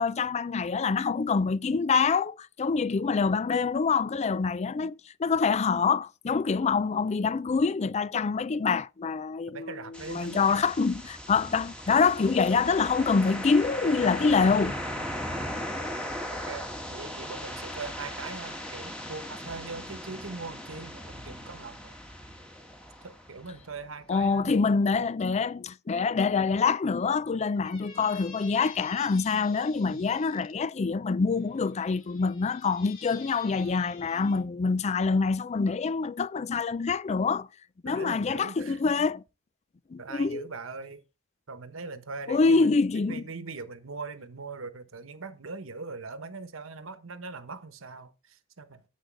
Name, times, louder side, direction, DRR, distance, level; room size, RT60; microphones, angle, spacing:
voice 1, 0.0-9.7 10.1-14.8 24.1-37.5 37.8-39.2 39.9-40.5 42.3-43.2, left 4 dB, 30° left, 0.4 m, -26 dB
voice 2, 9.5-10.6 11.3-11.5 16.3-21.9 23.0-24.6 29.9-30.1 37.8-38.8 40.0-41.0 41.5-48.8, right 4 dB, 65° right, 1.1 m, -41 dB
sound 1, 9.9-23.8, equal, 5° left, 1.8 m, -38 dB
Squeak, 27.4-30.5 31.3-34.4, left 6 dB, 70° left, 2.6 m, -50 dB
10.0 x 8.1 x 3.4 m
head